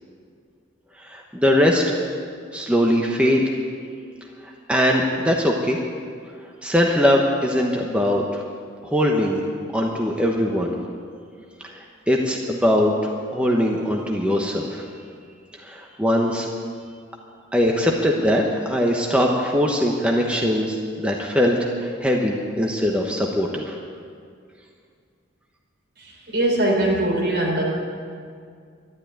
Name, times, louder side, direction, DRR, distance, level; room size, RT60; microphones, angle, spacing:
voice 1, 1.0-1.9 2.5-3.4 4.4-5.8 6.6-8.4 8.8-9.4 9.7-10.8 11.6-14.9 15.6-16.5 17.5-23.8, equal, 5° right, 0 dB, 1.0 m, -21 dB
voice 2, 26.3-27.6, right 1 dB, 55° right, -2 dB, 4.0 m, -21 dB
12.5 x 11.5 x 9.2 m, 2.2 s
head